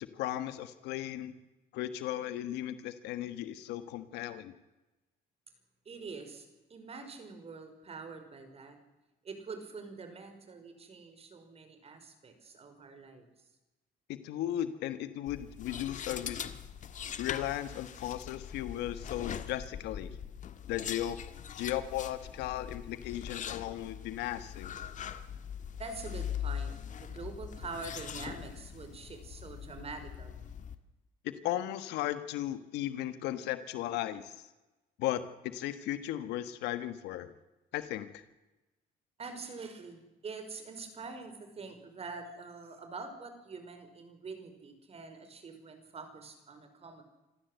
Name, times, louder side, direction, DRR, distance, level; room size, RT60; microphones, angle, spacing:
voice 1, 0.1-1.3 1.7-4.5 14.1-16.4 17.2-20.2 20.7-21.2 21.6-24.8 31.2-34.4 35.0-37.3 37.7-38.2, left 13 dB, 85° left, 12 dB, 1.3 m, -36 dB
voice 2, 5.8-8.8 9.2-13.3 25.8-26.7 27.0-30.5 39.2-47.0, right 4 dB, 35° right, 7 dB, 5.1 m, -45 dB
sound 1, 15.3-30.7, left 8 dB, 45° left, 1.6 m, -42 dB
26.0 x 15.0 x 8.0 m, 1.1 s
cardioid pair, 110°, 17 cm